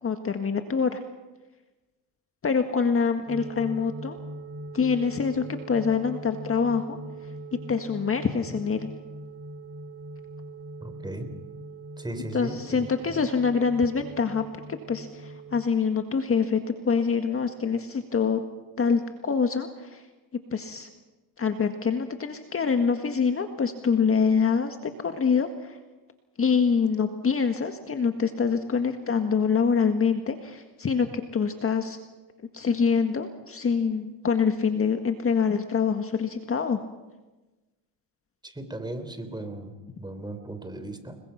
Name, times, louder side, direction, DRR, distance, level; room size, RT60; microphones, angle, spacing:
voice 1, 0.0-1.0 2.4-4.2 4.7-7.0 7.7-8.9 12.3-14.4 14.7-18.4 18.8-20.0 20.5-20.9 21.4-25.8 26.4-32.0 32.5-36.8, left 5 dB, 30° left, 7 dB, 1.8 m, -25 dB
sound 1, 3.3-15.6, right 2 dB, 30° right, 2.8 m, -41 dB
voice 2, 10.8-11.4 12.0-13.3 38.4-41.2, right 1 dB, 10° right, 9 dB, 3.7 m, -37 dB
29.0 x 22.0 x 5.9 m, 1.1 s
supercardioid pair, 95°, 46 cm